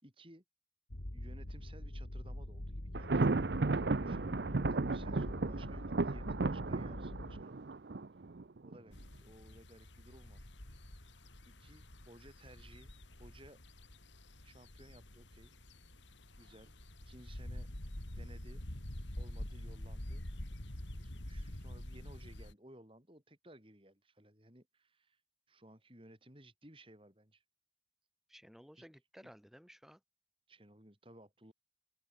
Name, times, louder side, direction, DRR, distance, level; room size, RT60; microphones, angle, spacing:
voice 1, 0.0-0.4 1.1-7.7 8.6-12.9 13.2-13.6 14.4-15.5 16.4-16.8 17.1-17.7 18.2-18.6 19.2-20.2 21.0-25.2 25.5-27.4 28.8-28.9 29.2-29.3 30.5-31.5, right 1 dB, 30° right, 5.6 m, -58 dB
sound 1, 0.9-7.4, left 1 dB, 70° left, 2.4 m, -44 dB
Thunder, 3.0-8.8, right 3 dB, 70° right, 0.7 m, -34 dB
sound 2, 8.9-22.5, left 1 dB, 85° left, 3.3 m, -47 dB
voice 2, 28.3-30.0, equal, ahead, 6.2 m, -57 dB
open air
head